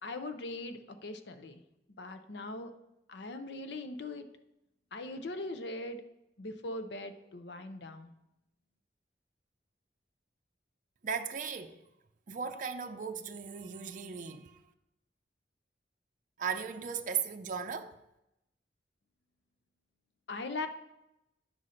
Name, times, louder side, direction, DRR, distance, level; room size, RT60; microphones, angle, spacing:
voice 1, 0.0-1.6 2.0-2.7 3.1-4.3 4.9-6.0 6.4-8.1 20.3-20.7, left 2 dB, 75° left, 0.7 m, -40 dB
voice 2, 11.0-11.8 12.3-14.6 16.4-18.0, right 6 dB, 45° right, 0.5 m, -37 dB
9.6 x 4.2 x 6.4 m
head